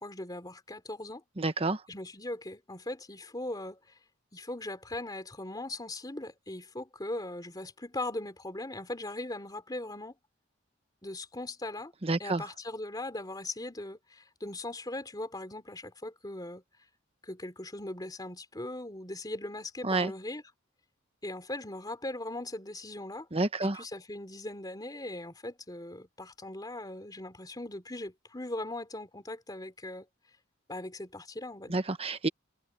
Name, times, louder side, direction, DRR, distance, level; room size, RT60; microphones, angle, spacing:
voice 1, 0.0-1.2 1.9-4.0 4.3-10.1 11.0-11.9 12.2-16.6 17.2-20.4 21.2-23.3 23.6-30.1 30.7-31.9, left 1 dB, 20° left, 3.3 m, -39 dB
voice 2, 1.4-1.8 12.0-12.4 19.8-20.1 23.3-23.8 31.7-32.3, right 3 dB, 30° right, 1.1 m, -29 dB
head